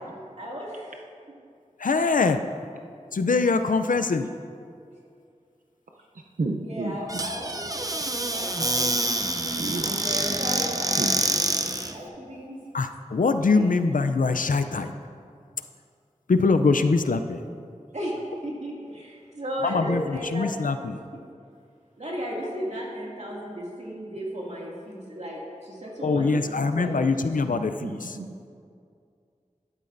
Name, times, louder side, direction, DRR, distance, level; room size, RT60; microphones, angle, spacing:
voice 1, 0.4-0.9 6.0-6.1 6.6-8.1 8.3-9.3 9.8-11.3 11.9-12.6 13.5-13.7 17.9-18.1 18.4-20.5 20.8-21.2 22.0-27.1, equal, 55° right, -4 dB, 2.3 m, -35 dB
voice 2, 1.8-2.4 3.1-4.3 12.7-14.9 16.3-17.4 19.6-21.0 26.0-28.0, left 4 dB, 85° left, 9 dB, 0.5 m, -23 dB
voice 3, 6.1-7.3 9.6-10.0 11.0-11.1 27.5-28.5, right 2 dB, 90° right, 1 dB, 0.6 m, -32 dB
Squeak / Cupboard open or close, 7.1-12.0, right 2 dB, 25° right, 0.6 m, -26 dB
12.0 x 11.5 x 2.6 m, 2.3 s
wide cardioid pair, 55°, 13 cm